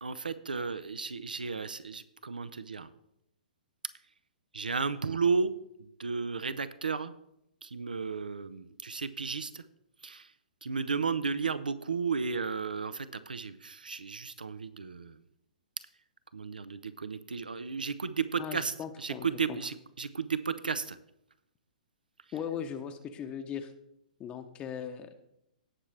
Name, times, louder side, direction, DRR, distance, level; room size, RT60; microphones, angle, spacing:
voice 1, 0.0-2.9 4.5-5.5 5.8-7.1 7.6-9.6 10.0-10.3 10.6-15.2 16.3-21.0, right 5 dB, 85° right, 14 dB, 0.6 m, -33 dB
voice 2, 18.4-19.6 22.3-23.7 24.2-25.2, left 8 dB, 25° left, 7 dB, 0.8 m, -38 dB
17.5 x 5.9 x 3.2 m, 0.81 s
hypercardioid pair, 125°, 5 cm